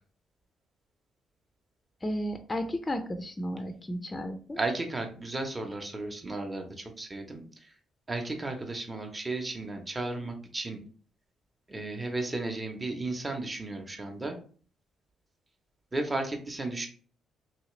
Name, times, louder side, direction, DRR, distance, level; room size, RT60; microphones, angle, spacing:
voice 1, 2.0-4.6, equal, 20° left, 7 dB, 0.4 m, -33 dB
voice 2, 4.6-7.7 8.1-10.8 11.7-14.4 15.9-16.9, right 2 dB, 20° right, 3 dB, 0.7 m, -34 dB
3.2 x 2.8 x 3.1 m, 0.42 s
cardioid pair, 90°, 0 cm